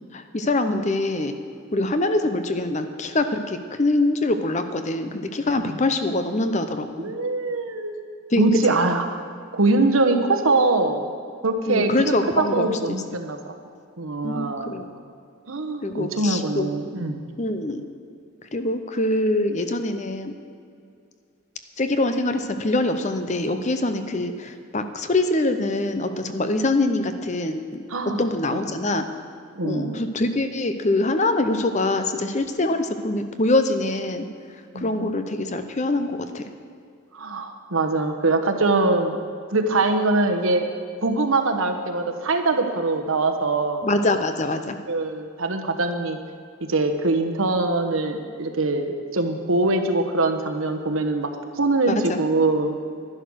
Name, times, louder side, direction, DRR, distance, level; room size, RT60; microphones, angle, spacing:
voice 1, 0.1-1.3 1.7-7.1 8.3-8.4 8.7-8.8 11.7-12.8 14.2-14.8 15.8-16.7 17.4-17.8 18.5-20.3 21.8-27.8 28.2-29.1 29.6-34.3 34.7-36.4 43.8-44.8 51.9-52.2, left 2 dB, 35° left, 9 dB, 0.7 m, -24 dB
voice 2, 7.0-8.0 8.4-9.2 9.5-11.0 11.4-13.5 14.0-14.9 15.5-17.2 27.9-28.2 29.6-30.0 34.7-35.1 37.1-39.2 39.5-40.7 41.0-43.9 44.9-46.2 46.7-51.3 51.6-52.8, right 2 dB, 75° right, 5 dB, 1.1 m, -23 dB
11.5 x 11.0 x 6.3 m, 2.4 s
head